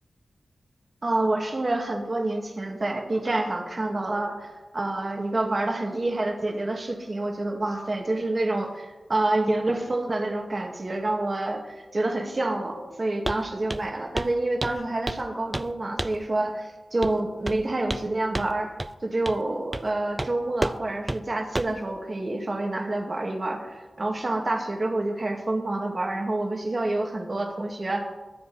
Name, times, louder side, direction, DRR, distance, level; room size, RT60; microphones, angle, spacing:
voice 1, 1.0-18.7 19.0-28.1, right 2 dB, 40° right, 3 dB, 2.1 m, -28 dB
Walk footsteps, 13.3-13.4 13.7-13.9 14.2-14.3 14.6-15.3 15.5-15.7 16.0-16.2 17.0-17.2 17.5-18.1 18.3-18.5 18.8-18.9 19.3-19.4 19.7-19.9 20.2-20.3 20.6-20.8 21.1-21.2 21.6-21.8, right 1 dB, 20° right, 0.4 m, -30 dB
22.5 x 7.5 x 4.3 m, 1.2 s
wide cardioid pair, 80°, 0 cm